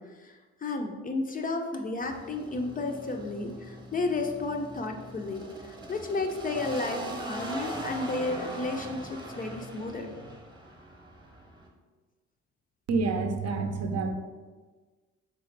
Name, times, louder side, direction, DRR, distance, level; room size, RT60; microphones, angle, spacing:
voice 1, 0.0-10.2, left 3 dB, 30° left, 4 dB, 0.4 m, -33 dB
sound 1, 2.0-11.7, right 1 dB, 15° right, 0.9 m, -41 dB
voice 2, 12.9-14.1, right 4 dB, 55° right, 4 dB, 0.6 m, -28 dB
3.9 x 3.5 x 3.2 m, 1.4 s
cardioid pair, 90°, 30 cm